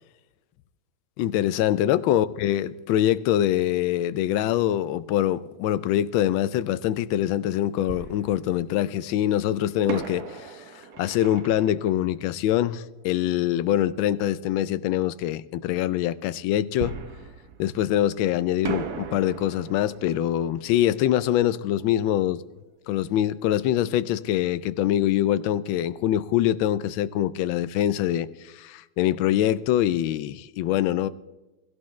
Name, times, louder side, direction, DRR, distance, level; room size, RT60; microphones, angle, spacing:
voice 1, 1.2-16.9 17.6-22.4 22.9-31.1, left 12 dB, 80° left, 1.3 m, -24 dB
Fireworks, 6.6-6.7 7.9-9.0 9.9-13.3 16.8-18.2 18.6-23.2 23.4-23.5 24.1-24.3, right 6 dB, 55° right, 1.4 m, -38 dB
16.5 x 16.0 x 3.1 m
omnidirectional pair, 2.2 m